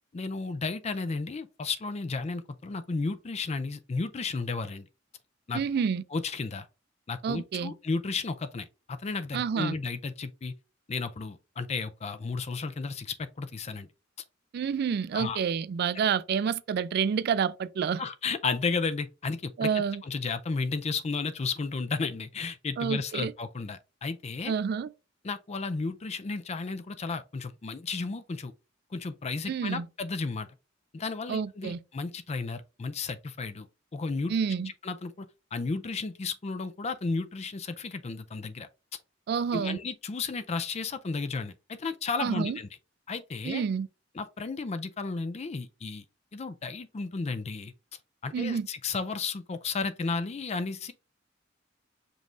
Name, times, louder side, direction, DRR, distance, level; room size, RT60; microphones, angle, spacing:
voice 1, 0.1-4.9 5.5-5.6 6.1-6.7 7.1-10.5 10.9-13.9 15.1-15.4 18.0-19.7 20.0-24.5 25.2-28.5 28.9-30.5 30.9-33.7 33.9-34.3 34.8-38.7 39.5-42.7 43.1-43.6 44.1-46.0 46.3-47.7 48.2-50.9, left 4 dB, 35° left, 0.4 m, -33 dB
voice 2, 5.5-6.0 7.2-7.7 9.3-9.8 14.5-18.0 19.6-20.0 22.8-23.3 24.5-24.9 29.5-29.9 31.3-31.8 34.3-34.7 39.3-39.8 42.2-42.6 43.4-43.9 48.3-48.7, right 6 dB, 55° right, 0.3 m, -28 dB
5.3 x 3.1 x 2.6 m
head